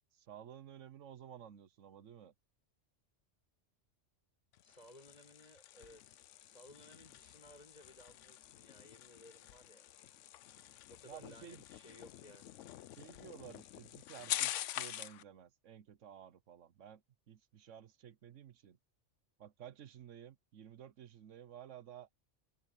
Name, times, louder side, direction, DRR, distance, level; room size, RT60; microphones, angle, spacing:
voice 1, 0.1-2.3 11.0-11.6 13.0-18.8 19.4-22.1, right 9 dB, 85° right, 1.2 m, -54 dB
sound 1, 4.5-15.2, left 13 dB, 85° left, 0.9 m, -46 dB
voice 2, 4.6-9.9 10.8-12.4, left 1 dB, 35° left, 6.4 m, -59 dB
omnidirectional pair, 1.2 m